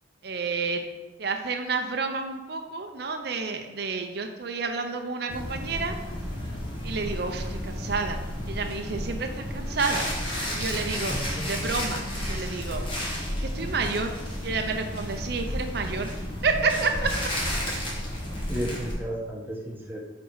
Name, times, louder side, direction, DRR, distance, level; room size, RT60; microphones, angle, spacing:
voice 1, 0.2-0.8 1.2-5.9 6.8-8.2 8.5-9.3 9.5-10.1 10.5-11.2 11.4-12.8 13.4-14.1 14.4-16.1 16.4-17.1, right 4 dB, 55° right, 5 dB, 0.6 m, -29 dB
sound 1, 5.3-18.9, equal, 25° left, 1.7 m, -32 dB
voice 2, 11.1-11.7 18.5-20.0, equal, 10° right, -1 dB, 1.1 m, -34 dB
7.1 x 4.2 x 4.7 m, 1.1 s
head